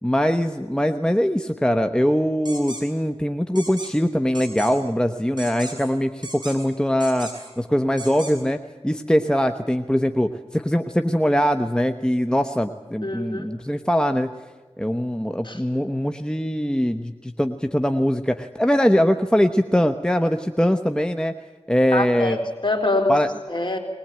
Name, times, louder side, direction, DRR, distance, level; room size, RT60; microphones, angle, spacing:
voice 1, 0.0-8.6 8.8-14.3 14.8-21.3 21.7-22.4 23.1-23.3, equal, 10° left, 6 dB, 1.0 m, -22 dB
sound 1, 2.5-2.8 3.6-3.9 4.3-4.7 5.4-5.9 6.2-6.7 7.0-7.5 8.0-8.3, right 1 dB, 40° right, 5.7 m, -36 dB
voice 2, 13.0-13.5 15.4-15.6 21.9-23.1 23.5-23.8, left 2 dB, 45° left, 2 dB, 4.0 m, -24 dB
20.5 x 20.5 x 9.0 m, 1.3 s
wide cardioid pair, 50°, 11 cm